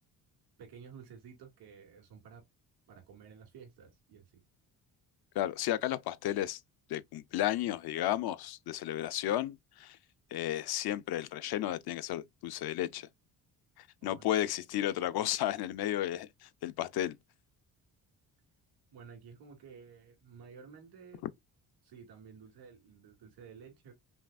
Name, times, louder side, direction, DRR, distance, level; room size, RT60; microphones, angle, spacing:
voice 1, 0.6-2.4 2.9-4.4 14.0-14.3 18.9-21.2 21.8-23.9, right 6 dB, 85° right, 2.6 m, -53 dB
voice 2, 5.3-6.6 6.9-10.0 10.3-13.1 14.0-17.2, left 13 dB, 75° left, 0.6 m, -33 dB
5.7 x 2.4 x 2.5 m
cardioid pair, 95°, 38 cm